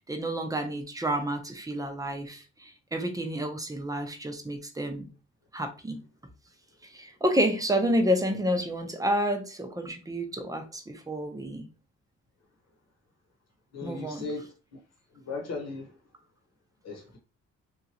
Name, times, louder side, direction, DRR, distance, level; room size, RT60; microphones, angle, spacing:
voice 1, 0.1-5.1 5.5-6.0 6.9-11.7 13.8-14.3, equal, 10° right, 0.7 m, -29 dB
voice 2, 13.7-14.8 15.1-16.0 16.8-17.2, left 3 dB, 60° left, 1.1 m, -37 dB
2.9 x 2.5 x 2.8 m
cardioid pair, 90°, 30 cm